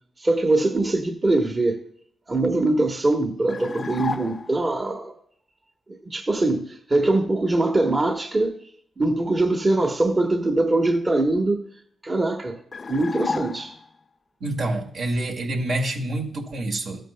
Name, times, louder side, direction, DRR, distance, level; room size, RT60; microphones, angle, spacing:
voice 1, 0.2-1.8 2.3-5.1 6.1-8.6 9.0-11.6 12.0-12.6 12.9-13.7, right 2 dB, 30° right, 4 dB, 1.1 m, -22 dB
sound 1, 3.5-4.7 12.7-14.0, left 4 dB, 45° left, 0.3 m, -31 dB
voice 2, 14.4-17.0, right 1 dB, 75° right, 1 dB, 2.0 m, -27 dB
14.0 x 9.0 x 2.2 m, 0.65 s
cardioid pair, 75°, 0 cm